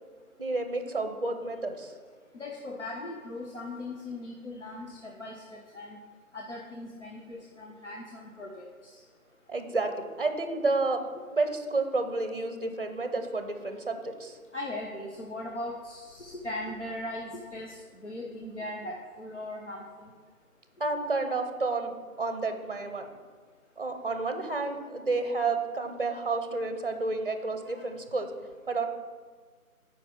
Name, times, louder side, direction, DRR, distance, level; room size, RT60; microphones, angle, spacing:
voice 1, 0.4-1.9 9.5-11.0 11.3-14.4 20.8-21.9 22.2-23.1 23.8-28.3 28.7-28.9, right 3 dB, 40° right, 7 dB, 0.7 m, -30 dB
voice 2, 2.3-6.0 6.3-8.7 14.5-20.1, left 1 dB, 50° left, 0 dB, 1.0 m, -39 dB
8.6 x 5.0 x 6.3 m, 1.5 s
figure-of-eight pair, 165°, 44 cm